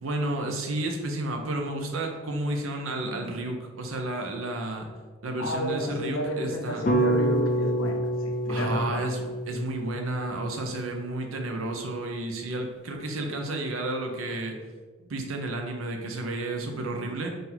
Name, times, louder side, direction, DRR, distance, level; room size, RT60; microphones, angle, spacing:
voice 1, 0.0-4.9 5.2-6.9 8.5-14.5 15.0-17.3, right 2 dB, 85° right, 3 dB, 0.7 m, -32 dB
voice 2, 5.4-9.0, equal, 85° left, 3 dB, 0.7 m, -31 dB
sound 1, 6.9-11.1, right 1 dB, 40° left, 0.4 m, -28 dB
3.9 x 2.6 x 4.3 m, 1.4 s
head